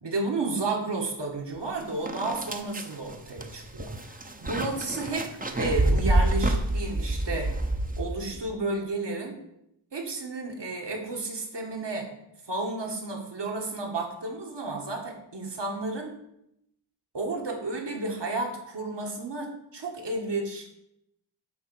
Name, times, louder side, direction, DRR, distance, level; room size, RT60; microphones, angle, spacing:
voice 1, 0.0-5.3 5.6-7.5 8.0-9.4 9.9-12.1 12.5-16.1 17.1-20.7, right 2 dB, 55° right, 1 dB, 1.9 m, -32 dB
sound 1, 1.6-1.7 2.1-8.4, right 1 dB, 15° right, 0.8 m, -27 dB
8.5 x 3.8 x 6.3 m, 0.80 s
cardioid pair, 60°, 49 cm